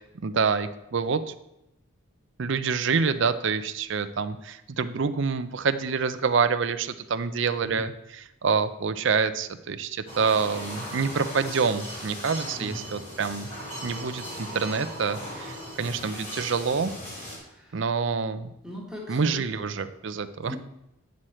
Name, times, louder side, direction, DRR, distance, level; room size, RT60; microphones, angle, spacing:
voice 1, 0.2-1.2 2.4-13.5 13.8-16.9 17.7-18.5 19.1-20.6, right 5 dB, 55° right, 11 dB, 0.5 m, -27 dB
sound 1, 10.1-17.4, equal, 35° left, 3.1 m, -38 dB
voice 2, 17.4-17.8 18.6-19.4 20.4-20.6, left 1 dB, 5° right, -4 dB, 1.5 m, -40 dB
9.3 x 6.3 x 4.3 m, 0.85 s
head